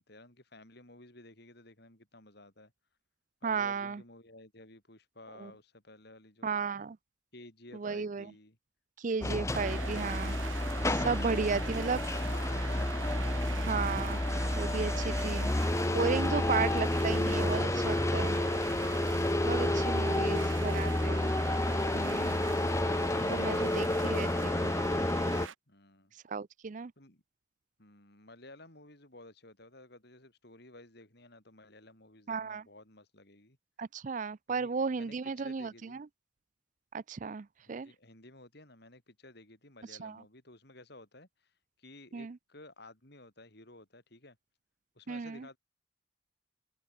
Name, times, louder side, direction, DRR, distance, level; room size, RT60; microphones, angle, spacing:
voice 1, 0.0-2.7 3.4-6.6 7.3-8.6 11.1-11.9 12.1-12.8 25.7-26.1 27.0-27.2 27.8-33.6 34.5-36.0 37.6-41.5 41.8-44.4 45.0-45.6, left 2 dB, 55° left, 5.7 m, -54 dB
voice 2, 3.4-4.0 5.4-5.5 6.4-7.0 7.7-8.3 9.0-10.4 10.8-12.0 13.5-14.2 14.6-15.5 15.9-18.4 19.4-21.3 21.9-22.4 23.2-24.7 26.3-26.9 32.3-32.6 33.8-36.1 36.9-37.9 40.0-40.2 42.1-42.4 45.1-45.5, right 5 dB, 40° right, 0.4 m, -34 dB
sound 1, 9.2-25.5, left 1 dB, 15° left, 0.7 m, -30 dB
sound 2, 9.5-25.5, right 6 dB, 80° right, 1.3 m, -43 dB
open air
head